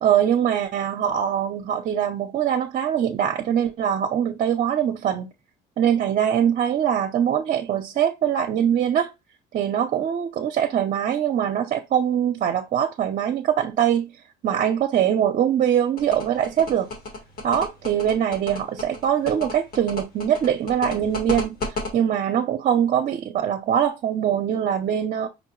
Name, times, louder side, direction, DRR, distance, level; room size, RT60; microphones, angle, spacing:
voice 1, 0.0-5.3 5.8-9.1 9.5-14.1 14.4-16.9 17.4-21.6 21.9-25.3, right 9 dB, 50° right, 0.6 m, -22 dB
sound 1, 16.0-21.9, left 3 dB, 60° left, 1.5 m, -31 dB
5.2 x 2.1 x 3.1 m
cardioid pair, 110°, 17 cm